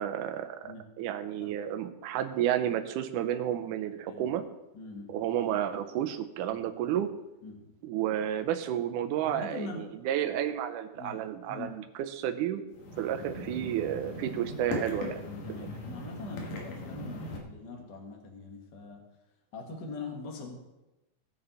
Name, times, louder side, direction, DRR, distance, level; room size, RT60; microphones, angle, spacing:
voice 1, 0.0-0.6 1.0-4.4 5.1-7.1 7.8-11.8 12.1-12.6 13.0-15.2, right 10 dB, 80° right, 8 dB, 2.2 m, -31 dB
voice 2, 4.7-5.1 6.5-6.6 7.4-7.7 9.2-9.8 10.2-10.3 11.0-11.2 11.5-11.7 13.0-13.2 15.4-19.0 19.5-20.6, left 3 dB, 40° left, 1 dB, 1.8 m, -42 dB
sound 1, 12.7-17.4, left 1 dB, 85° left, 3.2 m, -39 dB
17.5 x 6.9 x 4.1 m, 0.99 s
omnidirectional pair, 3.7 m